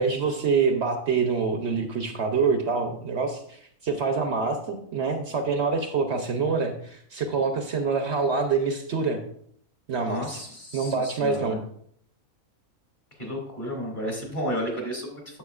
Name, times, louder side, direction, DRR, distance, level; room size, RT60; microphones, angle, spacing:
voice 1, 0.0-9.2 9.9-10.4 10.7-11.6, right 4 dB, 60° right, 5 dB, 0.9 m, -26 dB
voice 2, 10.0-11.6 13.2-15.4, equal, 35° left, -1 dB, 2.5 m, -32 dB
9.1 x 7.4 x 2.4 m, 0.65 s
omnidirectional pair, 1.4 m